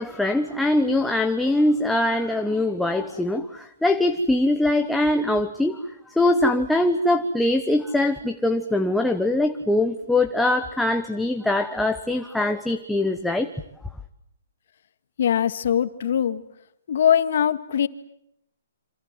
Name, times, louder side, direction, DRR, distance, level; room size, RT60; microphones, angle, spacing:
voice 1, 0.0-5.8 6.1-13.5, left 1 dB, ahead, 5 dB, 1.2 m, -22 dB
voice 2, 15.2-16.4 16.9-17.9, left 9 dB, 55° left, 12 dB, 2.1 m, -21 dB
28.5 x 27.0 x 7.8 m, 0.76 s
hypercardioid pair, 165°, 0 cm